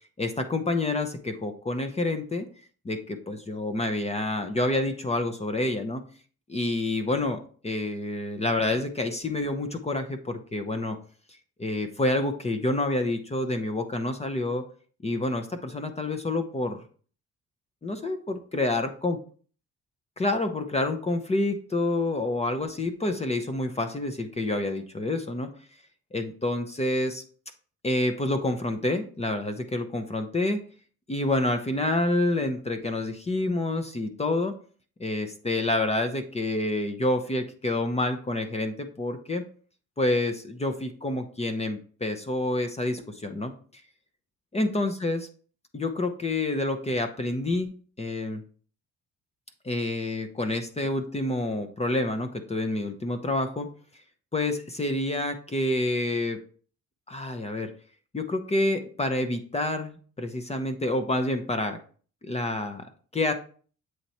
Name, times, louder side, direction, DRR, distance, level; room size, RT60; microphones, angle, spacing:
voice 1, 0.2-2.5 2.8-6.0 6.5-11.0 11.6-14.6 15.0-16.8 17.8-19.2 20.2-25.5 26.1-27.2 27.8-30.6 31.1-34.5 35.0-39.4 40.0-43.5 44.5-45.3 45.7-48.4 49.6-53.7 54.3-56.4 57.1-57.7 58.1-61.8 62.2-63.3, left 2 dB, 20° left, 7 dB, 0.7 m, -28 dB
7.8 x 2.9 x 4.1 m, 0.42 s
cardioid pair, 90°, 30 cm